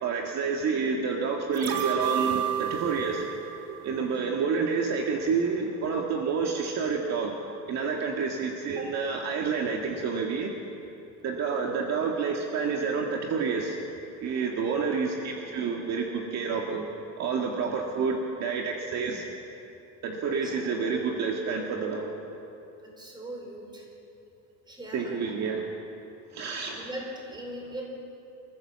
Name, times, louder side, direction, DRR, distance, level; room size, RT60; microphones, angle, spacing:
voice 1, 0.0-3.2 3.8-7.3 7.7-10.5 11.2-13.8 14.2-16.9 17.2-19.2 20.0-22.1 24.9-25.7 26.3-26.9, right 5 dB, 45° right, 1 dB, 1.9 m, -29 dB
sound 1, 1.5-4.7 5.0-5.1, right 10 dB, 80° right, 2.3 m, -31 dB
voice 2, 22.8-23.8 24.7-25.1 26.7-27.8, right 1 dB, 10° right, -1 dB, 4.7 m, -40 dB
27.5 x 14.5 x 7.6 m, 2.9 s
cardioid pair, 155°, 35 cm